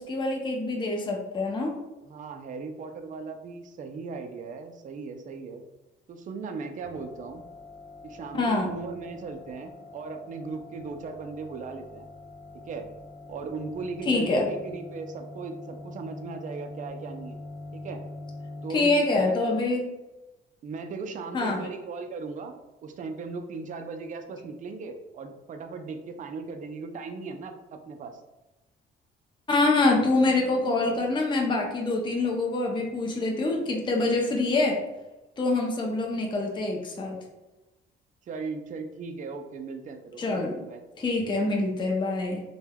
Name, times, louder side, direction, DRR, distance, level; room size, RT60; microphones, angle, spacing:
voice 1, 0.0-1.7 8.3-8.7 14.1-14.5 18.7-19.9 21.3-21.7 29.5-34.8 35.4-37.2 40.2-40.5 41.0-42.4, left 2 dB, 25° left, 0 dB, 0.5 m, -25 dB
voice 2, 2.1-5.6 6.1-7.4 8.0-12.1 12.5-12.8 13.3-17.4 17.7-18.0 18.6-19.4 20.6-22.6 22.8-28.2 38.2-40.8, right 4 dB, 40° right, 6 dB, 0.4 m, -38 dB
sound 1, 6.8-18.7, left 2 dB, 10° right, 1.0 m, -44 dB
3.2 x 2.1 x 2.2 m, 1.0 s
cardioid pair, 90°, 20 cm